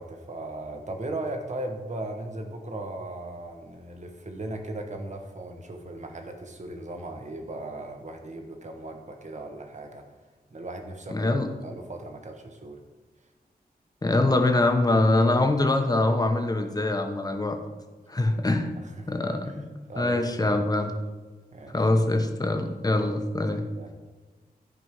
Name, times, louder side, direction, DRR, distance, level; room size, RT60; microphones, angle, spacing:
voice 1, 0.0-10.0 10.5-11.3 11.6-12.8 18.8-19.1 19.4-19.6 19.9-20.6 21.5-21.8 23.7-23.9, right 2 dB, 45° right, 4 dB, 1.3 m, -37 dB
voice 2, 11.1-11.5 14.0-17.6 18.1-18.7 19.1-20.9 21.7-23.6, left 2 dB, 25° left, 4 dB, 1.0 m, -24 dB
14.0 x 5.4 x 4.6 m, 1.3 s
wide cardioid pair, 130°, 16 cm